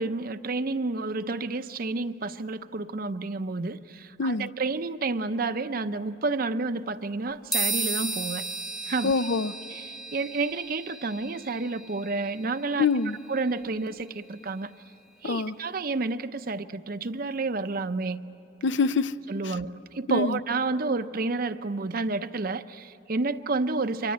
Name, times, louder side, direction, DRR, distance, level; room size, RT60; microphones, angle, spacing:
voice 1, 0.0-8.5 8.9-9.1 9.7-12.9 13.3-14.7 15.2-18.2 19.3-24.1, right 3 dB, 50° right, 11 dB, 0.7 m, -30 dB
voice 2, 4.2-4.5 9.0-9.5 12.8-13.2 15.2-15.5 18.6-19.2 19.4-19.5 20.1-20.4, left 4 dB, 70° left, 14 dB, 0.6 m, -25 dB
sound 1, 7.5-15.2, right 3 dB, ahead, 1.0 m, -35 dB
28.5 x 24.5 x 8.6 m, 2.8 s
head